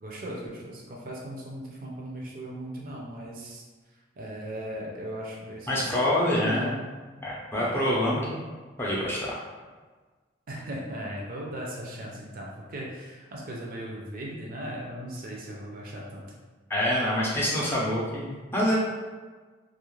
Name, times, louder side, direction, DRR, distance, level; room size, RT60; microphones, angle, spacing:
voice 1, 0.0-3.6 4.2-6.0 6.4-6.8 7.5-7.7 10.5-16.2, equal, 45° right, -3 dB, 0.5 m, -37 dB
voice 2, 5.7-6.7 7.2-8.4 8.8-9.3 16.7-18.8, left 1 dB, 10° left, -6 dB, 0.5 m, -26 dB
2.4 x 2.1 x 3.0 m, 1.4 s
head